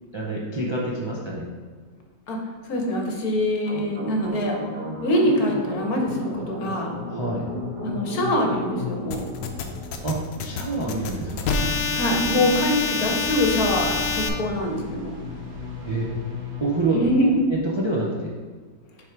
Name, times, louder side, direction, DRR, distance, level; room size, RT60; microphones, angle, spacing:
voice 1, 0.1-1.4 7.1-7.5 10.0-11.5 15.8-16.1 16.6-17.0 17.4-18.3, right 2 dB, 45° right, -4 dB, 0.3 m, -27 dB
voice 2, 2.7-4.6 5.0-6.9 7.8-9.2 11.9-15.1 16.9-17.3, left 1 dB, 65° left, 1 dB, 1.3 m, -24 dB
sound 1, 3.7-17.4, left 1 dB, 70° right, 1.5 m, -35 dB
sound 2, 9.1-14.3, left 5 dB, 90° left, 1.3 m, -27 dB
6.2 x 3.6 x 4.6 m, 1.5 s
omnidirectional pair, 1.8 m